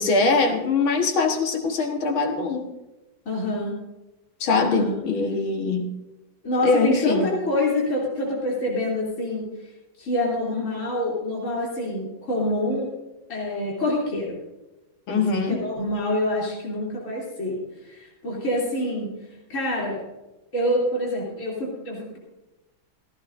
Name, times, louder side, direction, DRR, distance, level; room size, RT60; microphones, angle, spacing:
voice 1, 0.0-2.7 4.4-5.9 6.6-7.3 15.1-15.7, left 4 dB, 80° left, 3 dB, 2.2 m, -22 dB
voice 2, 3.3-3.8 4.6-4.9 6.4-9.5 10.0-12.9 13.3-14.4 15.1-15.2 15.6-17.6 17.8-20.0 20.5-22.2, left 1 dB, 35° left, -5 dB, 3.5 m, -26 dB
16.0 x 15.0 x 2.6 m, 1.0 s
omnidirectional pair, 2.2 m